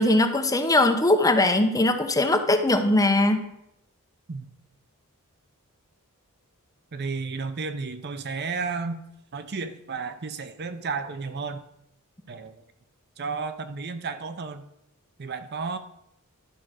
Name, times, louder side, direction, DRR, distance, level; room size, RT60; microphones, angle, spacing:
voice 1, 0.0-3.5, left 2 dB, 15° left, 6 dB, 0.8 m, -21 dB
voice 2, 6.9-9.0 9.3-11.6 12.3-12.6 13.2-14.6 15.2-15.8, right 4 dB, 50° right, 10 dB, 0.6 m, -32 dB
11.5 x 4.9 x 6.3 m, 0.80 s
head